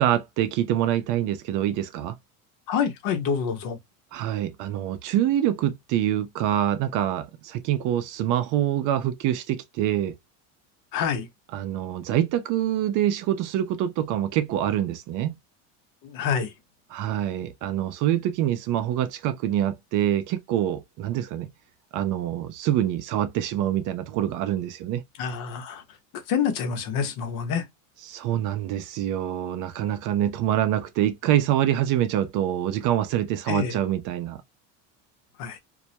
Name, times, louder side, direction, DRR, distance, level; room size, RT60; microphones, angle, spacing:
voice 1, 0.0-2.2 4.1-10.1 11.5-15.3 16.9-21.5 21.9-25.0 28.1-34.4, right 11 dB, 55° right, 0.5 m, -25 dB
voice 2, 2.7-3.8 10.9-11.3 16.0-16.5 25.2-25.8 26.3-27.6 33.5-33.8 35.4-35.6, left 7 dB, 60° left, 0.8 m, -27 dB
2.2 x 2.0 x 2.7 m
cardioid pair, 130°, 37 cm